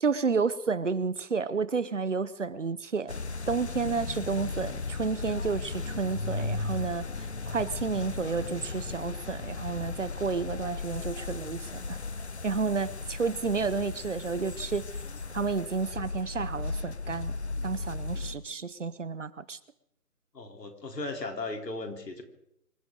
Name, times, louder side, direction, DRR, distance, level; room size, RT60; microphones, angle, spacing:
voice 1, 0.0-3.1 3.5-12.0 12.4-14.9 15.3-17.3 17.6-19.6, right 4 dB, 50° right, 17 dB, 1.0 m, -31 dB
sound 1, 3.1-18.4, left 3 dB, 45° left, 0.7 m, -36 dB
voice 2, 20.3-22.2, left 2 dB, 85° left, 4 dB, 3.8 m, -37 dB
25.5 x 14.0 x 3.9 m, 0.80 s
hypercardioid pair, 175°, 48 cm